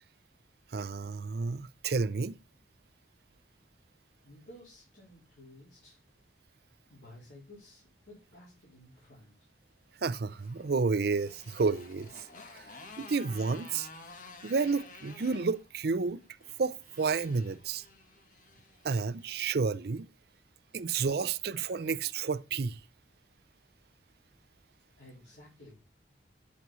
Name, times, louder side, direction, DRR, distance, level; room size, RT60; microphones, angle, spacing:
voice 1, 0.7-2.4 10.0-12.3 12.5-13.9 14.4-16.2 16.6-17.8 18.8-20.1 20.7-22.8, right 4 dB, 60° right, 0.5 m, -31 dB
voice 2, 4.2-6.0 6.9-9.5 25.0-25.7, left 1 dB, 90° left, 4.0 m, -54 dB
Motorcycle, 10.1-19.5, left 3 dB, 50° left, 1.4 m, -52 dB
9.8 x 6.1 x 4.0 m
head